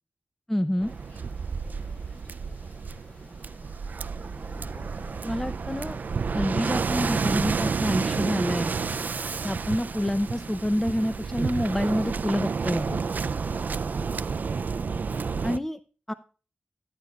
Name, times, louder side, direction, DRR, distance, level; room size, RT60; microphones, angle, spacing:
voice 1, 0.5-0.9 5.2-6.0 6.3-8.7 9.2-13.0 15.4-15.8 16.1-16.2, equal, 10° left, 11 dB, 0.6 m, -28 dB
Waves surf, 0.8-15.6, right 5 dB, 60° right, 0.3 m, -30 dB
sound 1, 0.9-14.1, left 1 dB, 40° left, 2.2 m, -50 dB
voice 2, 1.6-3.8, left 1 dB, 60° left, 2 dB, 4.7 m, -58 dB
14.5 x 9.1 x 2.3 m, 0.35 s
wide cardioid pair, 65°, 3 cm